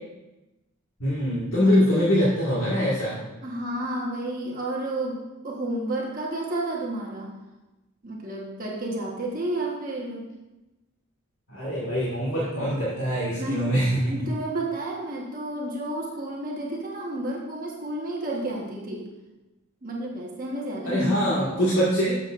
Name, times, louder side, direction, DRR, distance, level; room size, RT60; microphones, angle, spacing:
voice 1, 1.0-3.2 11.5-14.1 20.9-22.2, equal, 65° left, -8 dB, 1.8 m, -23 dB
voice 2, 1.6-2.2 3.4-7.3 8.0-10.2 13.2-13.7 14.1-19.1 19.8-22.1, right 1 dB, 40° right, -3 dB, 1.3 m, -31 dB
12.0 x 7.0 x 2.5 m, 1.0 s
head